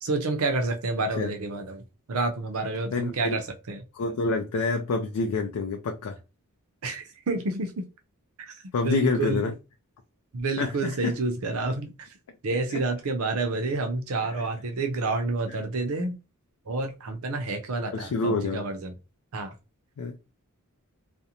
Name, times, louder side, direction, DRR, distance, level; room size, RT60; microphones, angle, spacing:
voice 1, 0.0-3.8 6.8-7.9 8.4-8.5 8.8-9.5 10.3-12.1 12.4-16.2 16.7-18.9 19.3-19.5, right 3 dB, 70° right, 0.6 m, -29 dB
voice 2, 2.9-3.4 3.9-6.2 8.7-9.5 10.6-11.2 12.7-12.8 14.4-14.5 17.9-18.6 20.0-20.2, left 3 dB, 85° left, 0.4 m, -27 dB
2.5 x 2.0 x 2.7 m
head